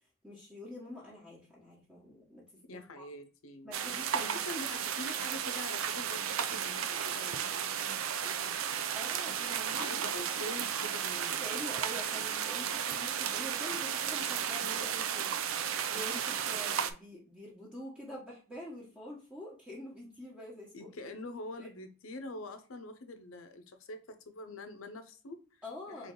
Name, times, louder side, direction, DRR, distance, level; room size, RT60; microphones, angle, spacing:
voice 1, 0.2-2.4 2.7-3.1 3.6-4.5 8.9-10.1 11.4-15.4 15.9-21.1 21.6-21.7 25.6-26.1, left 1 dB, 5° right, -6 dB, 1.1 m, -46 dB
voice 2, 2.7-3.8 4.1-9.0 9.7-11.5 20.7-25.6 26.0-26.1, left 2 dB, 75° left, 8 dB, 0.7 m, -45 dB
sound 1, 3.7-16.9, right 8 dB, 70° right, 0.4 m, -34 dB
3.9 x 3.2 x 3.7 m, 0.39 s
head